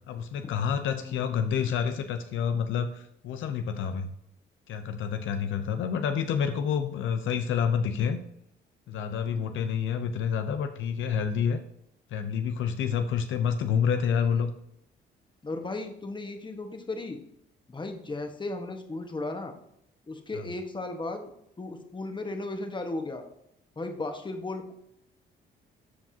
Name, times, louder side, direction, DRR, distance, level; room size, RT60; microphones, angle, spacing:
voice 1, 0.1-4.1 4.7-8.2 8.9-11.6 12.1-14.5, left 7 dB, 80° left, 8 dB, 0.7 m, -28 dB
voice 2, 0.9-1.5 9.3-9.7 13.9-14.5 15.4-17.2 17.7-19.5 20.1-21.3 21.6-23.3 23.7-24.7, left 2 dB, 25° left, 5 dB, 1.5 m, -36 dB
13.5 x 4.7 x 2.8 m, 0.74 s
cardioid pair, 90°, 20 cm